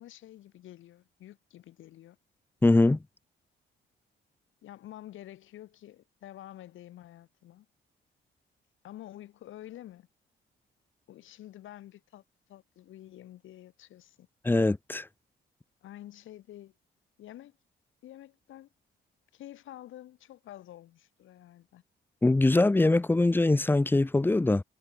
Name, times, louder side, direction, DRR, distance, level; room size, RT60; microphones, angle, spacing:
voice 1, 0.0-2.2 4.6-7.7 8.8-10.1 11.1-12.2 12.5-14.3 15.8-16.7 17.2-17.6 18.0-18.7 19.3-21.8, left 13 dB, 80° left, 3.6 m, -48 dB
voice 2, 2.6-3.0 14.4-15.1 22.2-24.6, left 2 dB, 10° left, 0.5 m, -22 dB
cardioid pair, 90°, 20 cm